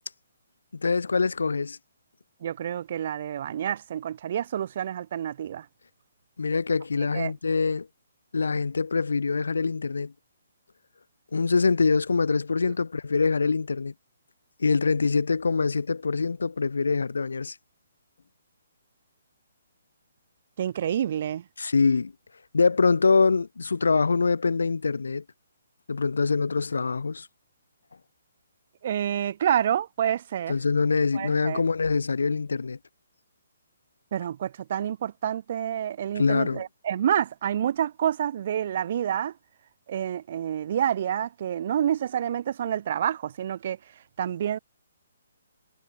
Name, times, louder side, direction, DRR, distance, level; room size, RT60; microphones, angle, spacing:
voice 1, 0.7-1.8 6.4-7.9 8.3-10.1 11.3-13.9 14.6-17.5 21.6-22.1 22.5-25.2 25.9-27.3 30.5-32.8 36.1-36.6, left 4 dB, 70° left, 1.3 m, -24 dB
voice 2, 2.4-5.6 7.1-7.3 20.6-21.4 28.8-30.5 31.1-31.6 34.1-39.3 39.9-43.8 44.2-44.6, right 10 dB, 50° right, 0.7 m, -28 dB
figure-of-eight pair, 135°, 0 cm